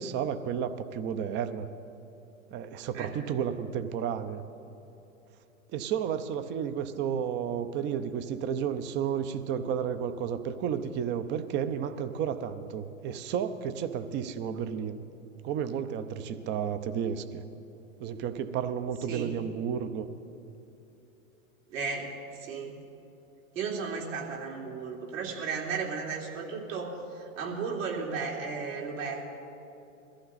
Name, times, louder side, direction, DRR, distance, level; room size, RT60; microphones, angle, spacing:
voice 1, 0.0-1.7 2.5-4.4 5.7-15.0 15.4-17.4 18.0-20.1, right 8 dB, 25° right, 11 dB, 0.7 m, -32 dB
voice 2, 21.7-22.7 23.5-29.4, right 5 dB, 65° right, -2 dB, 3.3 m, -35 dB
21.5 x 14.5 x 4.1 m, 2.9 s
hypercardioid pair, 115°, 41 cm